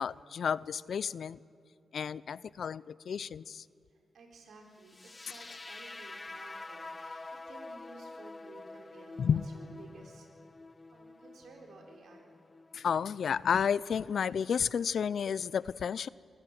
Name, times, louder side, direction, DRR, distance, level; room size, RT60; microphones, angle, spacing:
voice 1, 0.0-1.4 1.9-3.6 9.2-9.5 12.7-16.1, left 7 dB, 70° left, 0.4 m, -31 dB
voice 2, 3.9-10.3 10.9-12.3, right 3 dB, 80° right, 4.2 m, -55 dB
sound 1, 4.8-12.9, left 2 dB, 25° left, 0.6 m, -47 dB
24.5 x 14.5 x 9.2 m
cardioid pair, 80°, 0 cm